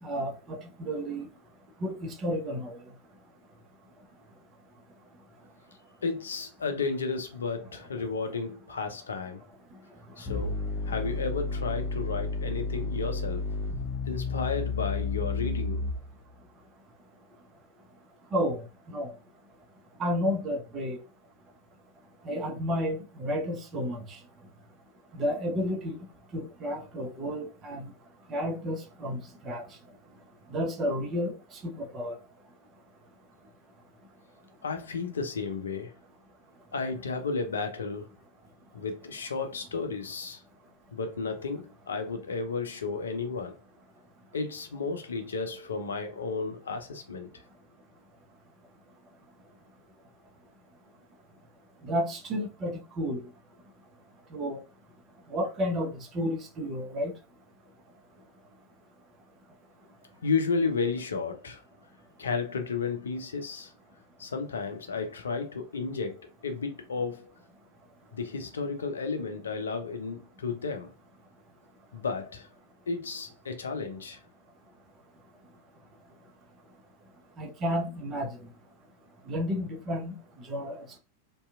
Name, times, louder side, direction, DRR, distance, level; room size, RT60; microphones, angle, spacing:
voice 1, 0.0-1.3 1.8-2.8 18.3-19.1 20.0-21.0 22.2-24.2 25.1-26.0 26.3-27.9 28.3-29.7 30.5-32.2 51.8-53.2 54.3-54.6 55.3-57.1 77.4-78.5 79.3-81.0, equal, 30° right, 0.6 m, -32 dB
voice 2, 6.0-9.4 10.2-13.4 14.1-15.8 34.6-35.9 36.7-38.1 38.7-40.4 40.9-43.6 44.3-47.3 60.2-61.6 62.2-63.7 64.2-67.3 68.1-70.9 71.9-72.5 72.9-74.2, left 4 dB, 70° left, 0.4 m, -33 dB
sound 1, 10.3-16.2, left 3 dB, 35° left, 0.7 m, -31 dB
2.7 x 2.3 x 2.3 m
figure-of-eight pair, 90°, 0 cm